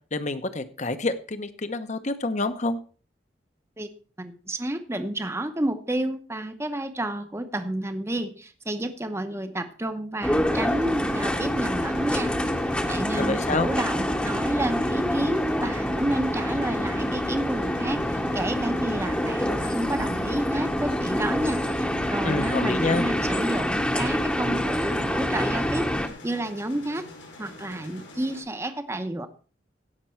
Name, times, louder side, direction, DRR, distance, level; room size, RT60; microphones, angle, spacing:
voice 1, 0.1-2.8 13.2-13.7 22.2-23.0, left 3 dB, 40° left, 11 dB, 0.9 m, -27 dB
voice 2, 4.2-12.4 12.8-25.9 26.2-27.1 27.4-29.3, right 1 dB, 15° right, 9 dB, 0.8 m, -30 dB
sound 1, 10.2-26.1, equal, 5° left, 1.0 m, -26 dB
sound 2, 10.5-28.4, left 1 dB, 80° left, 6.1 m, -45 dB
16.5 x 6.0 x 4.5 m, 0.38 s
head